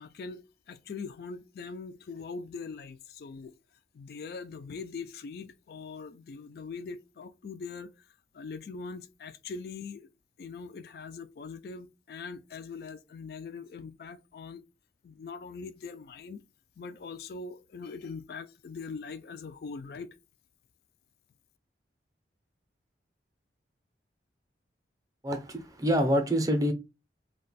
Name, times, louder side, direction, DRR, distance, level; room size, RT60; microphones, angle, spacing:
voice 1, 0.0-3.5 3.9-8.1 8.3-10.1 10.4-14.6 15.0-16.4 16.8-20.2, left 4 dB, 55° left, 0.3 m, -42 dB
voice 2, 25.2-26.7, equal, 20° right, 0.5 m, -26 dB
2.4 x 2.2 x 3.9 m
head